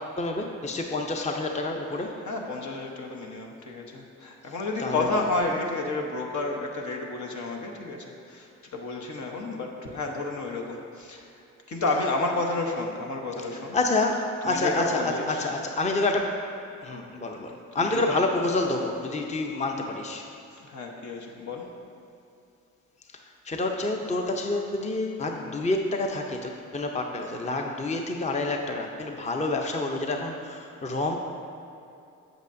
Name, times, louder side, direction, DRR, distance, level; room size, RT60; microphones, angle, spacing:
voice 1, 0.2-2.1 4.8-5.2 13.7-16.4 16.8-20.2 23.4-31.2, left 2 dB, 20° left, 3 dB, 0.6 m, -28 dB
voice 2, 1.9-13.8 14.4-15.6 17.7-18.2 20.5-21.6, left 2 dB, 65° left, 0 dB, 1.0 m, -31 dB
8.0 x 7.5 x 2.6 m, 2.6 s
cardioid pair, 60°, 31 cm